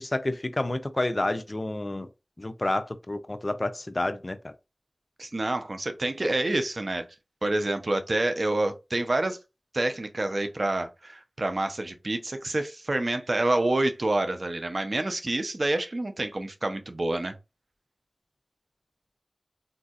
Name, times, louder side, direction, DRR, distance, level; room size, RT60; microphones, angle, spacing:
voice 1, 0.0-2.1 2.4-4.5, left 2 dB, 50° left, 0.4 m, -29 dB
voice 2, 5.2-7.0 7.4-9.4 9.7-17.3, right 2 dB, 65° right, 0.5 m, -27 dB
3.9 x 2.6 x 2.3 m
wide cardioid pair, 45°, 0 cm